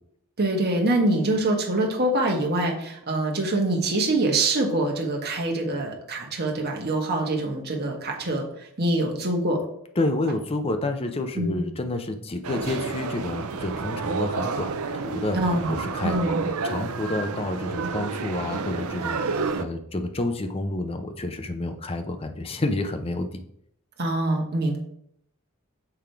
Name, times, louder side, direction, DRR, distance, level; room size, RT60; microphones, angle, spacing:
voice 1, 0.4-8.4 8.8-9.6 11.3-11.6 15.3-15.7 16.0-16.4 24.0-24.8, right 2 dB, 45° right, 1 dB, 1.3 m, -24 dB
voice 2, 10.0-15.4 15.7-16.2 16.6-23.4, left 2 dB, 25° left, 7 dB, 0.6 m, -29 dB
sound 1, 12.4-19.6, right 4 dB, 75° right, 0.6 m, -30 dB
6.9 x 3.6 x 4.5 m, 0.69 s
head